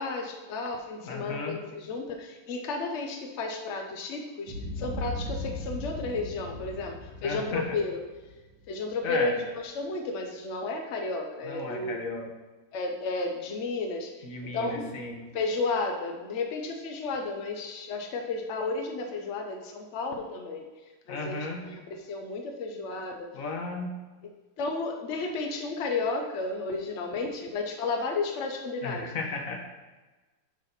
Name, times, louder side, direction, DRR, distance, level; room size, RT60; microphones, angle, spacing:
voice 1, 0.0-7.0 7.2-8.0 8.7-9.4 9.6-12.0 12.7-14.1 14.4-14.9 15.3-20.6 21.1-23.3 24.6-29.1, left 3 dB, 65° left, 3 dB, 0.7 m, -32 dB
voice 2, 1.0-1.6 7.2-7.8 9.0-9.4 11.4-12.3 14.2-15.2 21.1-21.6 23.3-23.9 28.8-29.6, left 3 dB, 50° left, 2 dB, 1.3 m, -34 dB
Boom, 4.5-8.7, left 1 dB, 90° right, 2.0 m, -37 dB
7.9 x 4.1 x 5.9 m, 1.2 s
omnidirectional pair, 2.1 m